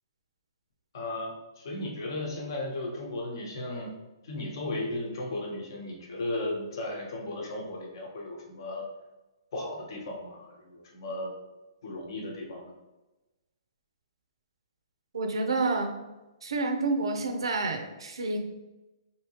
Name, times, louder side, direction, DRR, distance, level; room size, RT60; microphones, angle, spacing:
voice 1, 0.9-4.0 4.2-8.9 9.5-11.4 11.8-12.7, left 1 dB, 60° left, 1 dB, 0.9 m, -35 dB
voice 2, 15.1-15.9 16.4-18.4, right 3 dB, 90° right, 5 dB, 0.6 m, -29 dB
3.5 x 2.7 x 2.9 m, 1.1 s
hypercardioid pair, 150°, 3 cm